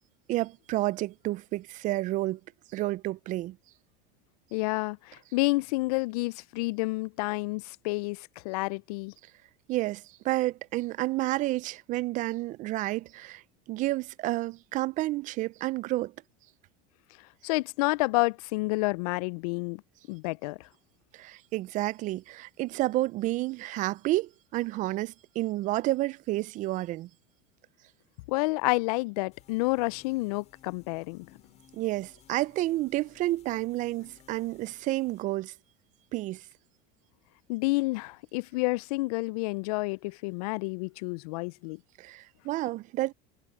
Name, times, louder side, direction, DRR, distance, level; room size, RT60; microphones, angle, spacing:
voice 1, 0.3-2.4 2.7-3.6 9.7-13.4 13.7-16.1 21.1-27.1 31.7-35.5 36.1-36.4 42.0-43.1, right 17 dB, 40° right, 0.4 m, -30 dB
voice 2, 4.5-9.1 17.4-19.8 20.1-20.7 28.3-31.3 37.5-41.8, left 24 dB, 75° left, 0.4 m, -29 dB
sound 1, 29.3-35.2, left 10 dB, 35° left, 6.8 m, -59 dB
supercardioid pair, 125°, 20 cm